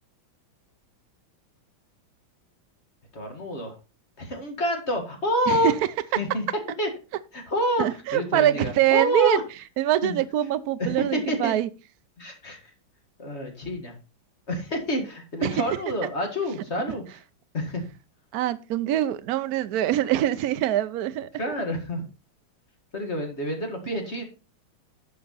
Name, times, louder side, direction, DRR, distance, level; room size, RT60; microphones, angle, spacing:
voice 1, 3.1-3.8 4.2-5.7 6.2-6.5 6.8-6.9 7.3-9.4 10.0-10.2 10.8-11.6 12.2-12.7 13.2-13.9 14.5-17.2 17.5-17.8 21.3-22.0 22.9-24.2, equal, 35° left, 2.0 m, -28 dB
voice 2, 7.8-9.4 9.8-11.7 15.4-15.5 18.3-21.3, right 13 dB, 80° right, 0.8 m, -24 dB
10.5 x 5.7 x 4.0 m
omnidirectional pair, 2.2 m